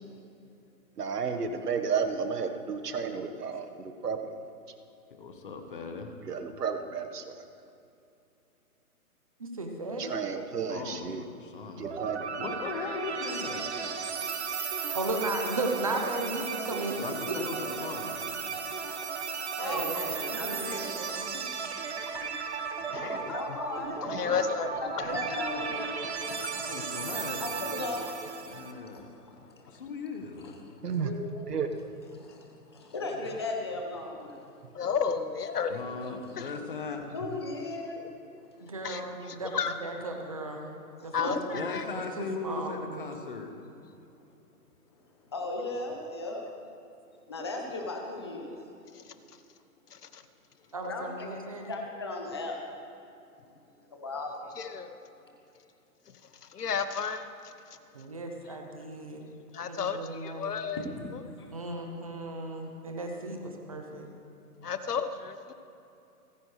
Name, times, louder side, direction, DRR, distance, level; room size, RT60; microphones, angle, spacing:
voice 1, 1.0-4.2 6.3-7.3 10.0-11.2 11.8-12.3 30.8-31.1 31.5-31.7, right 6 dB, 85° right, 7 dB, 1.4 m, -32 dB
voice 2, 5.1-6.1 10.7-11.9 12.3-13.7 17.0-18.2 20.4-21.4 26.7-28.1 28.4-29.1 29.7-30.6 35.7-37.0 41.5-43.5, left 4 dB, 35° left, 5 dB, 1.2 m, -39 dB
voice 3, 9.4-10.2 14.9-17.0 19.6-19.9 20.3-20.7 25.0-26.0 38.6-39.5 39.8-40.7 41.0-41.6 41.9-43.1 50.7-51.7 57.9-59.3 59.7-60.5 61.5-64.1, right 2 dB, 25° right, 3 dB, 0.8 m, -35 dB
sound 1, 11.8-28.7, right 6 dB, 45° right, 1.1 m, -35 dB
voice 4, 19.6-21.1 21.4-21.8 23.3-24.3 24.8-25.9 26.2-26.4 27.4-28.0 28.9-29.1 30.4-30.6 30.9-31.4 32.1-34.4 37.1-38.0 38.6-38.7 41.0-41.1 45.3-46.5 47.3-48.5 50.8-51.3 51.7-52.6 53.9-54.4 58.9-59.0, left 2 dB, 15° left, 1 dB, 0.8 m, -37 dB
voice 5, 22.9-23.6 23.9-25.6 25.9-27.4 28.5-29.8 32.1-32.9 34.7-36.5 37.3-37.4 38.8-39.8 41.1-41.9 48.9-49.4 49.9-50.2 54.5-55.0 56.1-57.8 58.4-58.6 59.5-60.9 61.1-61.2 64.6-65.5, left 6 dB, 80° left, 10 dB, 1.2 m, -35 dB
29.5 x 9.8 x 3.3 m, 2.7 s
hypercardioid pair, 170°, 46 cm